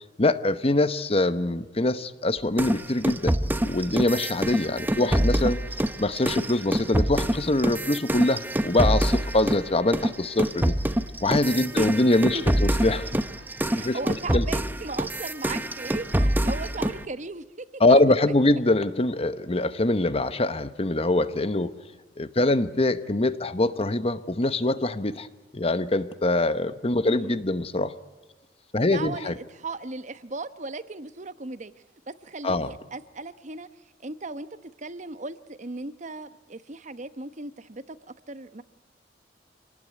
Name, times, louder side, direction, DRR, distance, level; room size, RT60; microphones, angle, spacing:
voice 1, 0.0-3.4 3.6-5.6 6.0-10.7 11.2-13.2 13.7-14.4 17.8-21.7 22.2-25.3 25.5-27.9 28.7-29.4 32.4-32.7, left 2 dB, 35° left, 12 dB, 1.0 m, -24 dB
sound 1, 2.6-9.7 9.9-17.0, right 1 dB, 10° right, 0.9 m, -26 dB
voice 2, 4.8-5.3 11.7-11.9 12.3-12.4 13.7-18.0 22.4-22.6 27.1-27.4 28.8-31.7 32.1-33.7 34.0-38.0 38.3-38.6, right 3 dB, 45° right, 13 dB, 1.0 m, -37 dB
26.5 x 19.0 x 9.4 m, 1.2 s
head